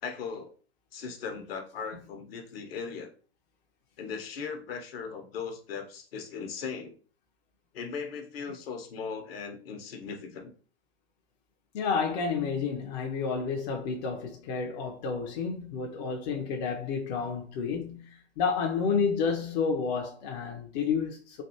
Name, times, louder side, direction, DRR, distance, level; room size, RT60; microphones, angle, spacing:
voice 1, 0.0-0.5 0.9-3.1 4.0-7.0 7.7-10.5, left 5 dB, 60° left, 0.9 m, -38 dB
voice 2, 11.7-21.4, left 5 dB, 40° left, 0.6 m, -30 dB
3.4 x 2.4 x 2.7 m
figure-of-eight pair, 105°, 33 cm